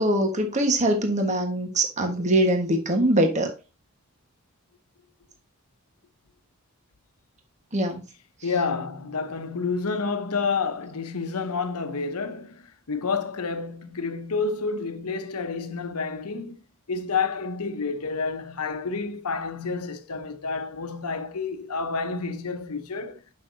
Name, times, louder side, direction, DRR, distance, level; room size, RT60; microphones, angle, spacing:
voice 1, 0.0-3.5 7.7-8.0, right 1 dB, 30° right, 1.4 m, -23 dB
voice 2, 8.4-16.6 16.9-23.2, left 4 dB, 90° left, 0.9 m, -29 dB
8.9 x 5.8 x 2.7 m
head